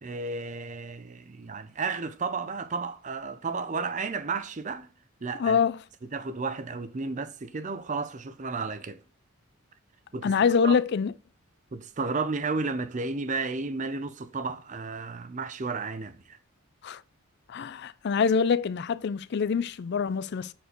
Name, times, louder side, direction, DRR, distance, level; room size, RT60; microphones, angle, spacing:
voice 1, 0.0-4.9 5.2-5.6 6.1-9.0 10.1-10.3 10.6-10.8 11.7-16.4, right 4 dB, 35° right, 0.5 m, -33 dB
voice 2, 5.4-5.8 10.2-11.1 16.8-17.0 17.5-20.5, left 6 dB, 50° left, 0.4 m, -25 dB
6.8 x 4.4 x 4.4 m
head